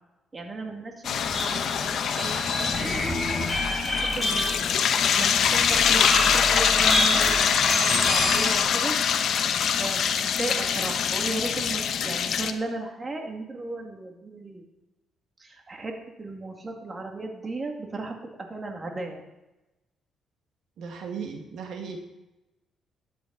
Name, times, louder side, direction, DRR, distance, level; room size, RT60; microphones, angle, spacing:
voice 1, 0.3-3.3 3.9-8.9 9.8-14.6 15.4-19.2, right 2 dB, 30° right, 2 dB, 2.4 m, -35 dB
sound 1, 1.0-12.5, left 7 dB, 65° left, 1.0 m, -24 dB
sound 2, 1.2-8.6, left 1 dB, 10° left, 4.7 m, -29 dB
voice 2, 20.8-22.0, right 6 dB, 75° right, 3 dB, 1.9 m, -36 dB
13.0 x 11.0 x 4.1 m, 0.98 s
cardioid pair, 90°, 0 cm